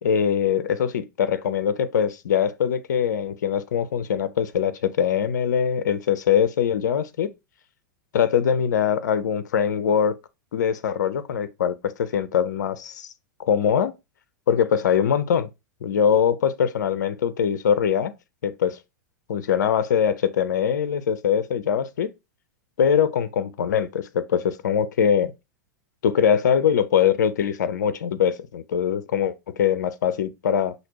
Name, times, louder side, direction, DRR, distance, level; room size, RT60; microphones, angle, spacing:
voice 1, 0.0-7.3 8.1-10.2 10.5-13.1 13.4-13.9 14.5-15.5 15.8-18.1 18.4-18.8 19.3-22.1 22.8-25.3 26.0-30.7, left 8 dB, 65° left, 0.4 m, -22 dB
5.8 x 2.7 x 2.8 m
figure-of-eight pair, 100°, 10 cm